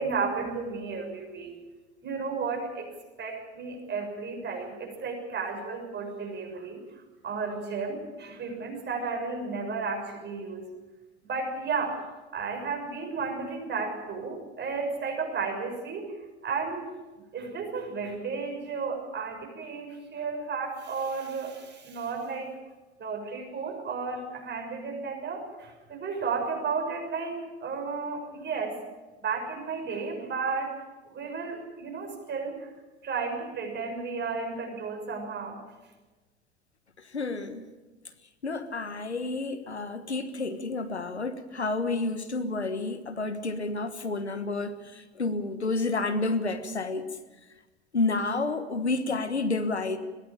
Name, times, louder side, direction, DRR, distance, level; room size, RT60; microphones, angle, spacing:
voice 1, 0.0-1.6 2.0-2.9 3.2-6.8 7.2-10.7 11.2-12.0 12.3-16.9 17.3-22.6 23.0-28.8 29.2-32.7 33.0-35.6, right 4 dB, 35° right, 3 dB, 6.3 m, -33 dB
voice 2, 37.0-37.6 38.4-47.1 47.9-50.0, left 3 dB, 90° left, 10 dB, 1.4 m, -30 dB
22.0 x 16.5 x 8.7 m, 1.2 s
figure-of-eight pair, 75°, 32 cm